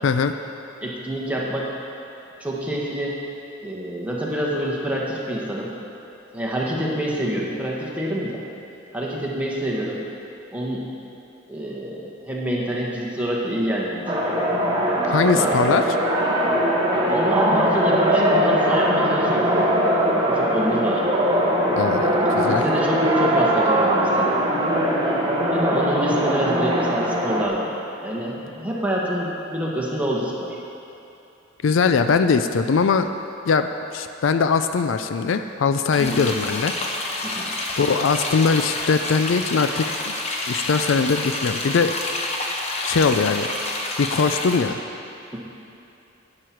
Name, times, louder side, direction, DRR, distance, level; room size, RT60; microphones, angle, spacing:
voice 1, 0.8-1.7 2.4-3.2 3.6-5.7 6.3-8.4 8.9-10.0 10.5-10.9 11.5-14.4 15.2-15.5 17.1-19.5 20.3-21.0 22.0-24.4 25.5-30.6 36.0-36.2 37.2-37.5, right 1 dB, 10° right, -5 dB, 1.5 m, -27 dB
sound 1, 14.1-27.5, equal, 25° right, 1.0 m, -21 dB
voice 2, 15.1-15.8 21.8-22.6 31.6-33.1 33.4-36.7 37.8-40.1 40.5-42.0 42.8-43.5 44.0-44.8, left 5 dB, 70° left, 8 dB, 0.4 m, -21 dB
sound 2, 35.9-44.7, left 2 dB, 35° left, 1.0 m, -28 dB
11.0 x 8.7 x 4.6 m, 2.8 s
head